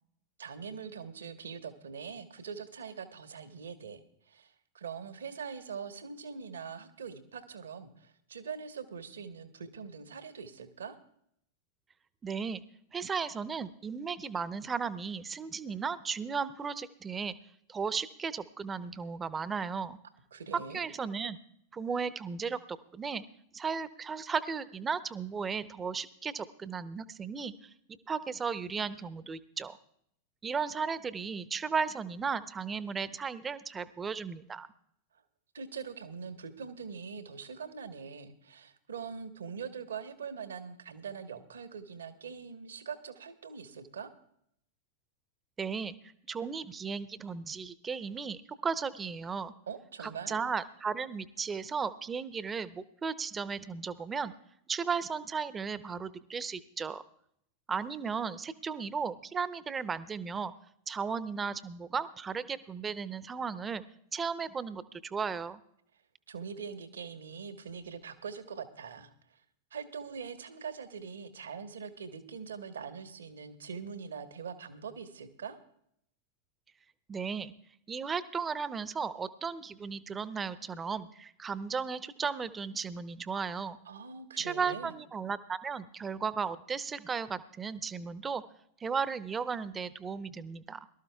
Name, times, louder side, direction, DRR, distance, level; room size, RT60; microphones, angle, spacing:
voice 1, 0.4-11.0 20.3-20.9 35.5-44.1 49.7-50.4 66.3-69.4 69.7-75.6 83.9-84.9, right 6 dB, 65° right, 9 dB, 1.2 m, -43 dB
voice 2, 12.2-12.6 12.9-17.3 17.7-20.0 20.5-21.4 21.7-23.2 23.5-27.7 28.1-29.8 30.4-34.7 45.6-45.9 46.3-49.5 50.0-54.3 54.7-57.0 57.7-60.5 60.9-63.8 64.1-65.6 77.1-77.5 77.9-83.8 84.4-88.4 88.8-90.9, right 5 dB, 20° right, 15 dB, 0.7 m, -35 dB
23.0 x 13.0 x 2.3 m, 0.71 s
figure-of-eight pair, 90°, 0 cm